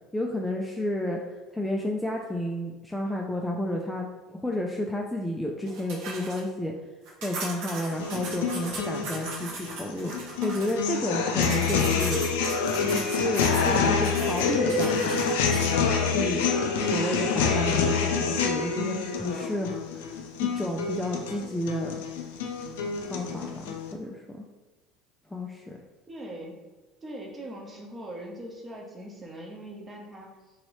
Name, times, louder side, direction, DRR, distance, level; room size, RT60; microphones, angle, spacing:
voice 1, 0.1-1.2 1.5-6.7 7.2-12.3 12.8-15.2 16.0-16.5 16.9-20.2 20.4-22.0 23.1-24.4 25.3-25.8, left 1 dB, 5° left, -1 dB, 0.3 m, -31 dB
sound 1, 5.7-6.4 7.1-10.7 11.4-15.7, right 3 dB, 70° right, 0.8 m, -38 dB
sound 2, 7.9-23.9, left 5 dB, 85° left, 0.3 m, -27 dB
voice 2, 8.0-8.3 26.1-26.6 27.0-30.5, right 1 dB, 25° right, -1 dB, 0.8 m, -41 dB
2.9 x 2.7 x 3.0 m, 1.2 s
supercardioid pair, 90°, 0 cm